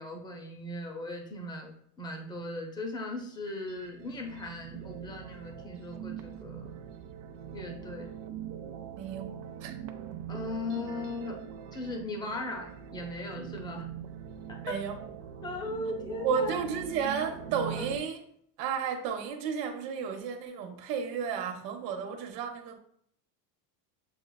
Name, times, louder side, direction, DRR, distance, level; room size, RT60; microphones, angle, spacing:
voice 1, 0.0-6.7 7.5-8.1 10.3-11.4 11.7-13.9 14.5-14.8 15.4-16.6 17.8-17.9, left 2 dB, 10° left, 2 dB, 0.5 m, -38 dB
sound 1, 3.3-18.0, right 9 dB, 65° right, 0.6 m, -42 dB
voice 2, 9.0-9.8 14.6-15.0 16.2-18.2 18.6-22.8, right 6 dB, 90° right, 5 dB, 0.9 m, -33 dB
6.9 x 2.4 x 2.2 m, 0.67 s
supercardioid pair, 120°, 47 cm